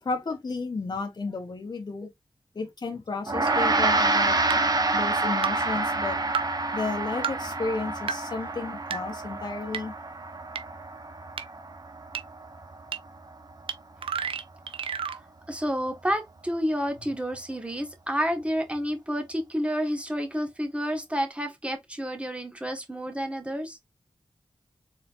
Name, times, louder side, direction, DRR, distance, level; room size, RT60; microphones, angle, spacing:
voice 1, 0.0-2.1 2.5-4.4 4.9-6.2 6.7-9.9, left 3 dB, 50° left, 0.9 m, -33 dB
Gong, 3.3-12.8, right 2 dB, 45° right, 1.1 m, -28 dB
sound 1, 3.5-3.6 4.5-4.6 5.4-5.5 6.3-6.4 7.2-7.3 8.1-8.2 8.9-9.0 9.7-9.8 10.6-10.7 11.4-11.5 12.1-12.2 12.9-13.0 13.7-13.8 14.0-15.2, right 7 dB, 90° right, 0.5 m, -30 dB
voice 2, 15.5-23.8, equal, 15° right, 1.4 m, -30 dB
4.0 x 3.9 x 2.5 m
cardioid pair, 50°, 9 cm